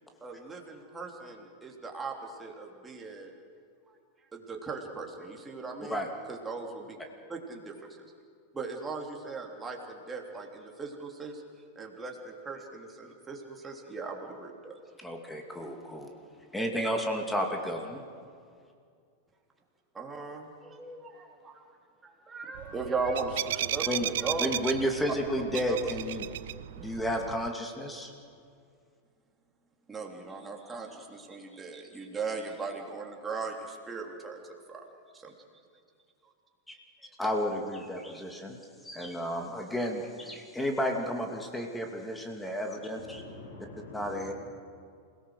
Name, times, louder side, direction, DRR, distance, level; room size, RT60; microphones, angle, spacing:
voice 1, 0.2-3.3 4.3-6.0 6.3-7.0 7.3-7.7 8.5-11.4 11.7-14.8 19.9-21.6 22.0-24.5 25.7-25.8 29.9-34.8 35.1-35.3, right 4 dB, 15° right, 1 dB, 3.4 m, -38 dB
voice 2, 15.0-16.1 16.5-18.0 23.9-24.1 24.4-26.3 26.8-28.1 36.7-36.8 37.2-38.6 38.8-43.2 43.9-44.3, equal, 5° left, 3 dB, 2.6 m, -32 dB
sound 1, 22.6-27.5, right 13 dB, 65° right, 0.5 m, -35 dB
voice 3, 43.0-44.3, left 2 dB, 65° left, 1 dB, 6.3 m, -46 dB
27.5 x 18.0 x 6.5 m, 2.3 s
figure-of-eight pair, 95°, 0 cm